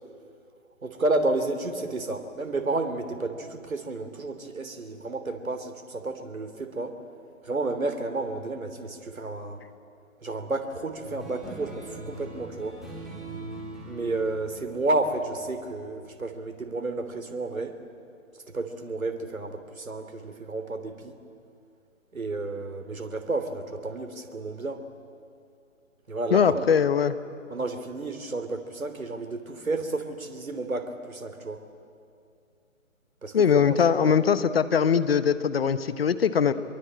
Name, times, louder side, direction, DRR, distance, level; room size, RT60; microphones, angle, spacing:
voice 1, 0.8-7.0 7.4-9.6 10.2-12.8 13.8-17.8 18.5-21.1 22.1-24.9 26.1-26.7 27.5-31.7 33.2-34.2, right 2 dB, 90° right, 7 dB, 3.2 m, -31 dB
sound 1, 11.0-15.9, right 2 dB, ahead, 3.9 m, -41 dB
voice 2, 26.3-27.2 33.3-36.5, left 7 dB, 45° left, 13 dB, 1.2 m, -21 dB
26.0 x 22.5 x 8.8 m, 2.4 s
figure-of-eight pair, 155°, 40 cm